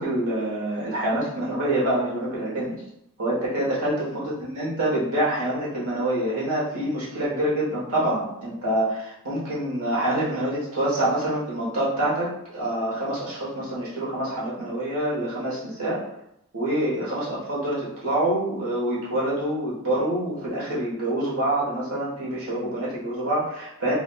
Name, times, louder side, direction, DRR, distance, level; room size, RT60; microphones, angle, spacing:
voice 1, 0.0-2.8 3.2-16.0 16.5-23.9, right 1 dB, 80° right, -7 dB, 1.2 m, -26 dB
4.8 x 2.3 x 2.2 m, 0.79 s
head